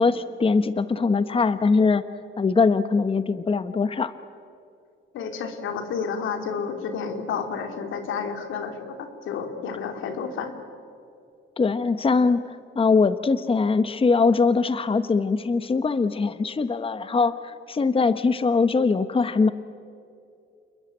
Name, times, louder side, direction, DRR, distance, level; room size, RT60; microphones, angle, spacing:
voice 1, 0.0-2.0 2.4-4.1 11.6-12.4 12.7-19.5, left 4 dB, 25° left, 12 dB, 1.0 m, -22 dB
voice 2, 5.1-10.5, left 6 dB, 85° left, 6 dB, 3.0 m, -31 dB
29.0 x 21.5 x 8.9 m, 2.6 s
cardioid pair, 90°, 20 cm